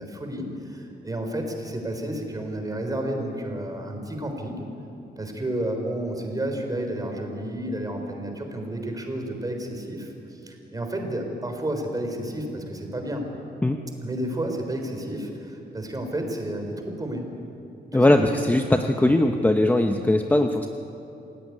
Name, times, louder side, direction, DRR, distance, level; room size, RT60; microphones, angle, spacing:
voice 1, 0.0-4.7 5.2-13.3 14.0-17.4 17.9-18.4, right 1 dB, 20° right, 4 dB, 4.1 m, -31 dB
voice 2, 17.9-20.7, left 1 dB, 10° left, 5 dB, 0.9 m, -20 dB
27.5 x 17.0 x 9.6 m, 2.8 s
wide cardioid pair, 125°, 18 cm